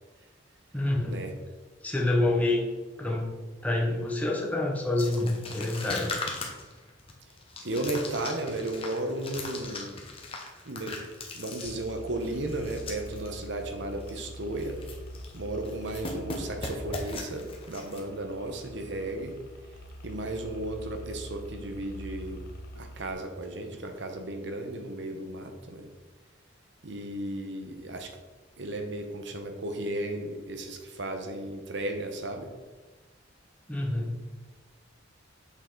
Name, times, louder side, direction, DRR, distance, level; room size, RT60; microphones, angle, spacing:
voice 1, 0.7-1.2 1.8-2.6 3.0-3.3 3.6-6.2 33.7-34.1, left 2 dB, 10° left, -1 dB, 0.9 m, -27 dB
sound 1, 5.0-13.3 13.6-13.7 14.0-14.3 14.6-15.4 15.6-18.0, left 3 dB, 30° left, 1.0 m, -39 dB
voice 2, 7.6-10.0 10.7-11.0 11.3-14.8 15.3-19.4 20.0-22.4 22.7-25.9 26.8-28.1 28.6-32.5, right 1 dB, 65° right, 5 dB, 1.0 m, -34 dB
sound 2, 11.6-23.1, equal, 55° left, 0.8 m, -44 dB
6.5 x 5.4 x 3.9 m, 1.3 s
head